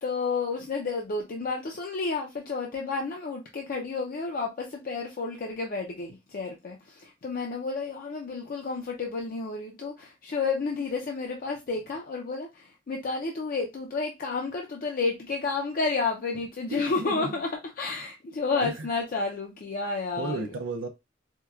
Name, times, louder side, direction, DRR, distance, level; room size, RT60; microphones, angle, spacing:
voice 1, 0.0-17.5 17.8-20.4, left 4 dB, 45° left, 0.5 m, -31 dB
voice 2, 16.7-17.4 18.6-18.9 20.2-20.9, right 2 dB, 80° right, 0.5 m, -33 dB
4.5 x 2.1 x 2.3 m
head